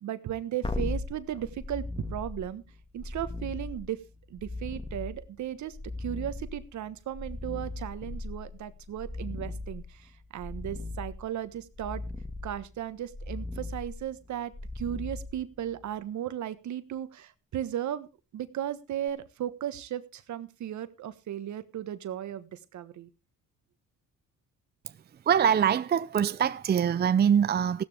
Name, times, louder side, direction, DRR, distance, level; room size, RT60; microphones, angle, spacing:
voice 1, 0.0-2.6 2.9-4.0 4.3-12.0 12.4-18.1 18.3-23.1, right 11 dB, 70° right, 1.3 m, -36 dB
sound 1, 0.6-15.9 19.1-19.2, left 2 dB, 15° left, 1.7 m, -38 dB
voice 2, 25.3-27.8, right 8 dB, 35° right, 0.6 m, -23 dB
15.5 x 12.5 x 3.5 m
cardioid pair, 90°, 30 cm